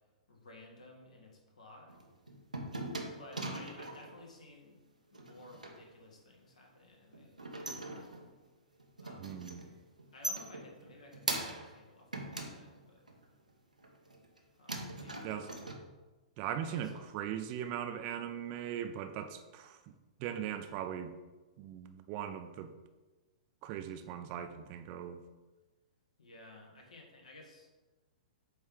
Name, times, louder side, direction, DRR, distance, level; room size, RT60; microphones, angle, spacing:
voice 1, 0.3-1.9 3.2-4.8 5.1-7.4 9.0-9.3 10.1-13.1 14.6-15.6 16.6-17.1 26.2-27.7, left 2 dB, 70° left, 1 dB, 1.5 m, -55 dB
sound 1, 1.9-4.2 5.1-5.8 7.1-8.5 8.8-9.7 10.0-11.8 12.1-13.2 13.8-14.4 14.7-15.7, right 2 dB, 90° right, 0.8 m, -41 dB
voice 2, 9.2-9.6 15.2-15.5 16.4-19.8 20.2-21.1 21.6-22.7 23.6-25.2, right 9 dB, 35° right, 8 dB, 0.4 m, -39 dB
8.2 x 3.1 x 3.7 m, 1.2 s
figure-of-eight pair, 110°, 4 cm